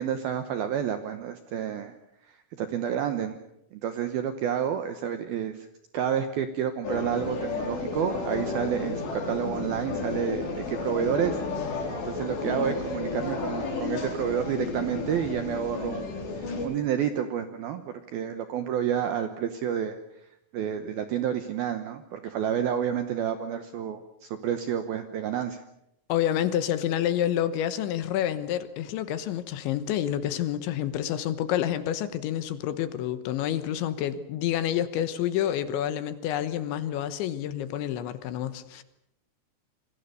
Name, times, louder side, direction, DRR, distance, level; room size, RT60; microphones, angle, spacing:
voice 1, 0.0-1.9 2.3-3.4 3.7-5.7 5.9-11.4 12.0-20.0 20.5-25.6, right 9 dB, 75° right, 9 dB, 2.3 m, -30 dB
sound 1, 6.8-16.7, left 4 dB, 60° left, 6.1 m, -32 dB
voice 2, 26.1-38.8, left 11 dB, 75° left, 12 dB, 3.2 m, -28 dB
27.5 x 22.5 x 6.8 m, 0.80 s
omnidirectional pair, 5.7 m